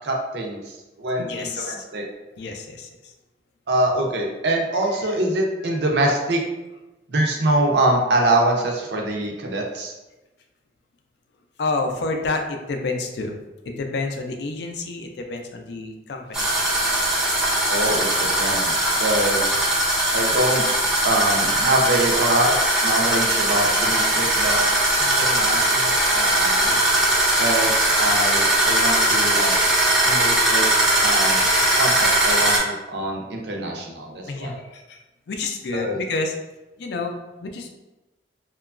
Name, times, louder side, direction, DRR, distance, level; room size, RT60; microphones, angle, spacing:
voice 1, 0.0-2.0 3.7-6.4 7.1-9.9 17.7-19.4 20.1-20.6 21.0-22.6 22.8-26.8 27.4-29.6 30.0-31.5 31.7-34.6 35.7-36.0, right 1 dB, 75° right, 1 dB, 0.5 m, -24 dB
voice 2, 1.2-1.8 2.4-3.1 5.7-5.8 11.6-13.4 13.7-16.5 18.5-19.0 25.5-25.6 34.3-35.0 35.3-36.3 36.8-37.7, left 3 dB, 75° left, 4 dB, 0.4 m, -29 dB
sound 1, 16.3-32.6, right 1 dB, 5° right, 0.5 m, -20 dB
2.9 x 2.2 x 2.4 m, 1.1 s
head